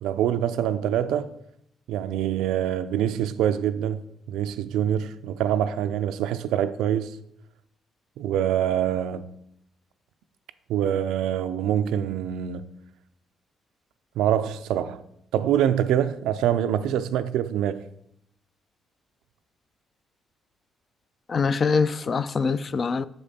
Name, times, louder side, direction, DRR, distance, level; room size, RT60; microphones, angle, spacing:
voice 1, 0.0-1.3 1.9-4.0 4.3-7.2 8.2-9.3 10.7-12.6 14.2-15.0 15.3-17.8, right 10 dB, 90° right, 0.4 m, -25 dB
voice 2, 21.3-23.1, left 5 dB, 45° left, 0.3 m, -24 dB
6.6 x 5.2 x 4.1 m
cardioid pair, 90°, 0 cm